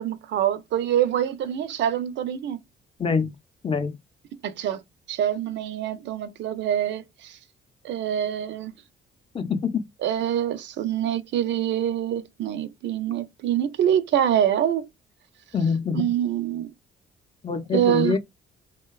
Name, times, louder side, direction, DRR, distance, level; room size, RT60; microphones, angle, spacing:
voice 1, 0.0-2.6 4.4-4.8 5.1-7.3 7.8-8.7 10.0-14.9 15.9-16.7 17.7-18.2, right 10 dB, 65° right, 0.4 m, -25 dB
voice 2, 3.0-3.3 3.6-4.0 9.3-9.9 15.5-16.1 17.4-18.2, left 5 dB, 25° left, 0.4 m, -25 dB
2.7 x 2.1 x 2.2 m
cardioid pair, 90°, 20 cm